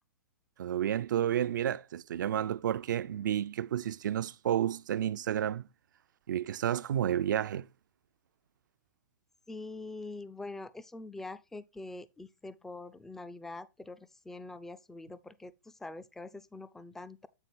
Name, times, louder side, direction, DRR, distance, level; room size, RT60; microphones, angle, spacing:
voice 1, 0.6-5.7 6.3-7.7, right 10 dB, 75° right, 0.4 m, -31 dB
voice 2, 9.5-17.3, left 2 dB, 5° left, 0.3 m, -44 dB
8.2 x 3.8 x 4.3 m
hypercardioid pair, 140°, 10 cm